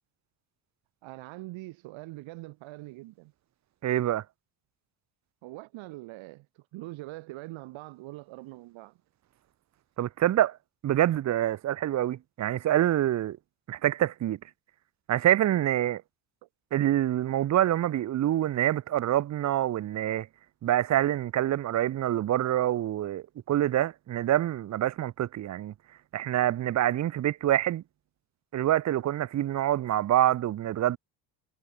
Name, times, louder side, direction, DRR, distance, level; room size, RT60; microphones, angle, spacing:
voice 1, 1.0-3.3 5.4-9.0 16.4-16.5, right 19 dB, 70° right, 1.5 m, -43 dB
voice 2, 3.8-4.2 10.0-10.6 10.8-13.4 13.7-14.4 15.1-16.0 16.7-20.3 20.6-25.7 26.1-27.8 28.5-31.0, right 12 dB, 35° right, 0.6 m, -26 dB
supercardioid pair, 95°, 49 cm